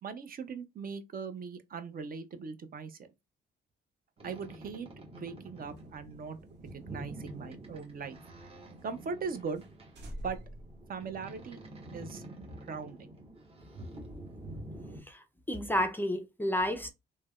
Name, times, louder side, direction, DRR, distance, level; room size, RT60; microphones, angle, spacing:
voice 1, 0.0-3.1 4.2-4.9 5.1-6.4 6.7-8.2 8.8-9.6 10.2-10.4 10.9-11.6 11.9-12.2 12.7-13.1, right 5 dB, 45° right, 0.5 m, -39 dB
Boat Water vehicle, 4.2-15.0, right 1 dB, 30° right, 1.1 m, -48 dB
sound 1, 5.6-8.4 8.8-8.9 9.2-9.3 9.5-9.7 9.9-11.6, equal, 65° right, 1.0 m, -48 dB
voice 2, 15.1-16.9, left 1 dB, 10° left, 0.4 m, -31 dB
3.2 x 2.1 x 2.2 m
cardioid pair, 90°, 20 cm